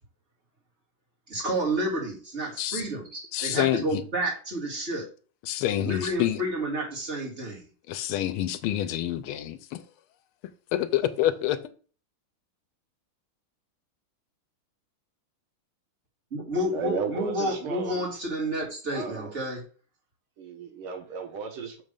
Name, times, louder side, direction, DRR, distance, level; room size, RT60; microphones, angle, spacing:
voice 1, 1.3-5.1 5.8-7.7 16.3-19.6, right 1 dB, 30° right, 2.4 m, -30 dB
voice 2, 3.3-4.0 5.5-6.4 7.9-9.8 10.7-11.6, left 12 dB, 85° left, 1.5 m, -27 dB
voice 3, 16.7-18.1 18.9-19.3 20.4-21.8, right 6 dB, 80° right, 2.0 m, -34 dB
6.7 x 3.2 x 5.2 m
omnidirectional pair, 2.3 m